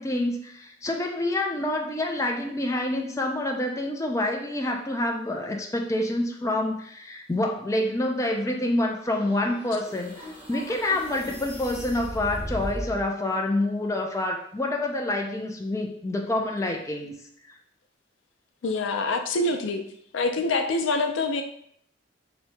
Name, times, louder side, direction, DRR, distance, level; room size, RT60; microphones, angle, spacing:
voice 1, 0.0-17.1, left 1 dB, 15° left, 2 dB, 0.4 m, -27 dB
sound 1, 9.0-13.1, equal, 10° right, 1.2 m, -38 dB
voice 2, 18.6-19.8 20.1-21.4, left 2 dB, 85° left, 5 dB, 0.4 m, -25 dB
2.9 x 2.7 x 3.3 m, 0.66 s
head